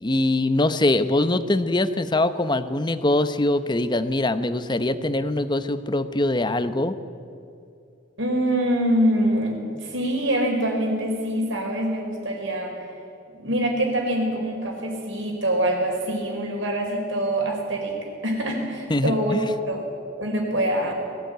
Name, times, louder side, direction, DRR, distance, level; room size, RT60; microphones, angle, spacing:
voice 1, 0.0-6.9 18.9-19.4, left 2 dB, 25° left, 11 dB, 0.8 m, -23 dB
voice 2, 8.2-12.7 13.3-18.0 18.2-19.4 19.7-19.8 20.2-20.9, right 1 dB, 75° right, 1 dB, 4.9 m, -24 dB
21.0 x 15.5 x 9.3 m, 2.6 s
head